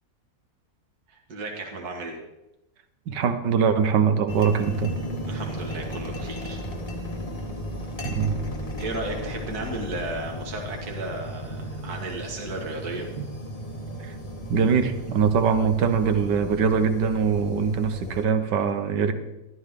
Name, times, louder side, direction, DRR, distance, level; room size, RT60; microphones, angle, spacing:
voice 1, 1.1-2.2 5.3-6.7 8.8-13.1, right 2 dB, 60° right, 1 dB, 2.3 m, -34 dB
voice 2, 3.1-4.9 8.0-8.4 13.2-13.3 14.0-14.1 14.5-19.1, right 6 dB, 80° right, 9 dB, 1.6 m, -22 dB
sound 1, 4.3-18.2, equal, 25° left, 1.0 m, -35 dB
14.0 x 11.5 x 3.7 m, 0.95 s
omnidirectional pair, 1.8 m